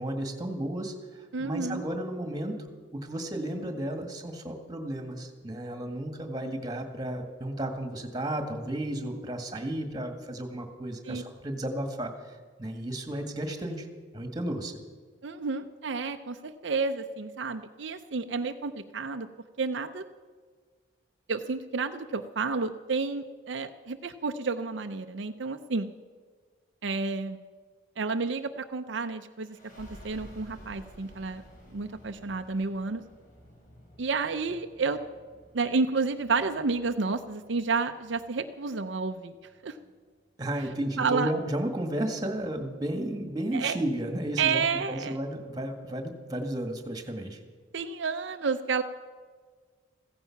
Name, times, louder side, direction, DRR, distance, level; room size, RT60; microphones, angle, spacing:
voice 1, 0.0-2.6 2.9-13.9 14.1-14.8 40.4-47.4, right 1 dB, 20° right, 5 dB, 1.8 m, -33 dB
voice 2, 1.3-1.9 11.1-11.2 15.2-19.3 19.6-20.0 21.3-25.9 26.8-27.4 28.0-31.4 31.7-33.0 34.0-35.0 35.5-39.3 39.6-39.8 41.0-41.3 43.5-43.8 44.4-45.2 47.7-48.8, right 4 dB, 70° right, 7 dB, 0.6 m, -30 dB
sound 1, 29.4-40.7, equal, 45° left, 3.9 m, -53 dB
15.5 x 15.0 x 5.9 m, 1.5 s
head